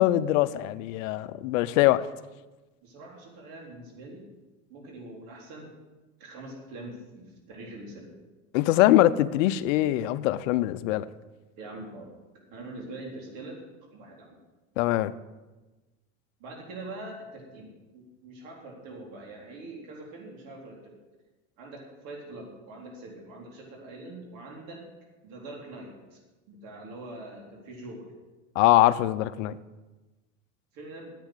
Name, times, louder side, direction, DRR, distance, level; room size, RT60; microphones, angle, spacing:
voice 1, 0.0-2.1 8.5-11.1 14.8-15.1 28.6-29.6, left 15 dB, 75° left, 0.7 m, -22 dB
voice 2, 2.8-4.3 4.7-5.7 6.2-8.1 11.6-13.6 13.9-14.4 16.4-20.9 21.6-24.9 25.2-26.2 26.5-28.1 30.7-31.1, right 2 dB, 60° right, 4.0 m, -43 dB
10.5 x 8.5 x 8.0 m
supercardioid pair, 115°, 39 cm